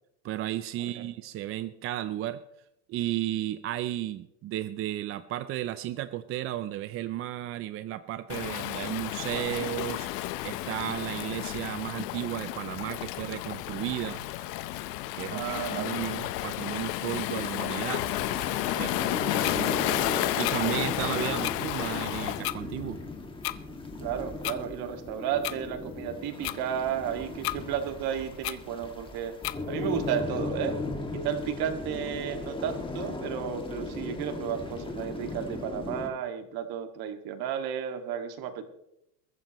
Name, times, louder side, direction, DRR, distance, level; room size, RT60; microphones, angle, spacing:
voice 1, 0.2-2.4 2.9-14.2 15.1-15.4 15.7-18.0 18.8-23.0, right 13 dB, 30° right, 12 dB, 0.5 m, -34 dB
Waves surf, 8.3-22.4, left 15 dB, 75° left, 1.1 m, -32 dB
voice 2, 15.3-16.0 18.8-19.2 24.0-29.3 29.7-30.8 31.1-38.6, right 9 dB, 45° right, 6 dB, 2.2 m, -33 dB
sound 1, 17.9-36.1, left 3 dB, 10° left, 2.1 m, -37 dB
sound 2, 19.4-19.6 20.4-20.6 21.4-21.6 22.4-22.6 23.4-23.6 24.4-24.6 25.4-25.6 26.4-26.6 27.4-27.6 28.4-28.6 29.4-29.6, left 20 dB, 50° left, 0.8 m, -32 dB
22.0 x 14.5 x 3.1 m, 0.83 s
supercardioid pair, 125°, 49 cm